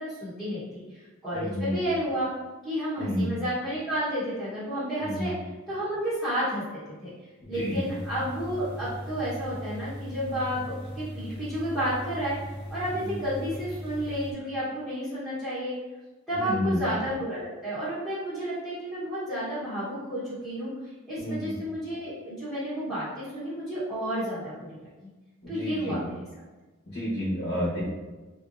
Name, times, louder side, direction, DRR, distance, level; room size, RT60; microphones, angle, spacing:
voice 1, 0.0-2.3 2.6-5.3 5.7-6.6 7.0-7.1 7.5-12.4 12.7-15.7 16.3-20.7 21.1-25.1 25.5-26.1, equal, ahead, -16 dB, 1.3 m, -31 dB
voice 2, 1.3-1.7 3.0-3.3 5.0-5.3 7.4-7.8 12.9-13.1 16.3-16.8 21.2-21.5 25.4-26.0 26.9-27.8, left 1 dB, 50° left, -11 dB, 1.2 m, -30 dB
sound 1, 7.5-14.3, equal, 50° right, 0.5 m, -39 dB
3.6 x 2.9 x 2.7 m, 1.2 s
head